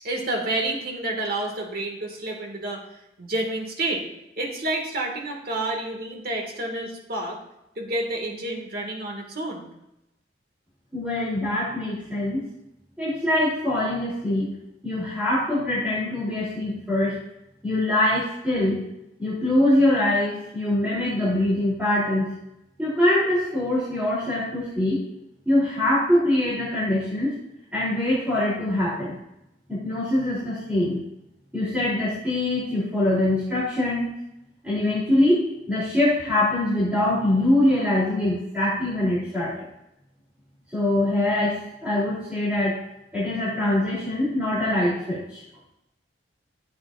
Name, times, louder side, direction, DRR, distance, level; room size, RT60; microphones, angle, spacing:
voice 1, 0.0-2.8 3.2-4.1 4.4-7.4 7.8-9.7, right 2 dB, 60° right, 1 dB, 2.1 m, -29 dB
voice 2, 10.9-12.4 13.0-14.5 14.8-17.2 17.6-18.8 19.2-22.3 22.8-25.0 25.4-27.3 27.7-29.2 29.7-31.0 31.5-34.1 34.6-39.6 40.7-41.6 41.8-42.8 43.1-45.4, left 1 dB, 10° right, -10 dB, 3.5 m, -23 dB
13.5 x 8.5 x 2.6 m, 0.86 s
head